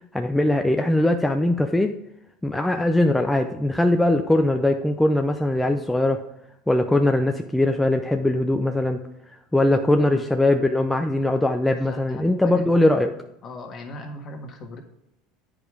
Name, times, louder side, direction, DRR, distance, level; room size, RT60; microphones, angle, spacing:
voice 1, 0.1-1.9 2.4-6.2 6.7-9.0 9.5-13.1, left 1 dB, 5° left, 4 dB, 0.6 m, -21 dB
voice 2, 9.9-10.2 11.8-12.7 13.4-14.8, left 1 dB, 40° left, 4 dB, 1.5 m, -38 dB
8.5 x 5.1 x 4.8 m, 0.87 s
supercardioid pair, 95°, 0 cm